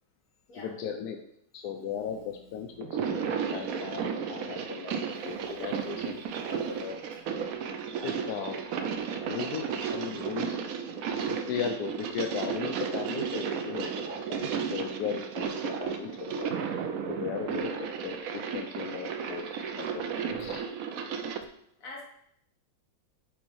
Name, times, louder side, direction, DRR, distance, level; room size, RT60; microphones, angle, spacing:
voice 1, 0.6-1.2 1.5-3.2 3.5-4.0 4.3-5.0 5.2-7.0 8.0-8.6 9.2-9.6 9.9-10.5 11.3-16.5 17.1-19.4 19.8-20.1 20.4-20.6, left 7 dB, 75° left, 4 dB, 0.9 m, -37 dB
voice 2, 1.8-2.2 2.5-2.7 5.1-5.9 6.2-6.9 21.2-21.4 21.8-22.0, left 2 dB, 45° left, -3 dB, 2.0 m, -49 dB
sound 1, 2.8-21.4, right 6 dB, 80° right, 0.7 m, -33 dB
6.3 x 4.1 x 4.6 m, 0.74 s
omnidirectional pair, 2.2 m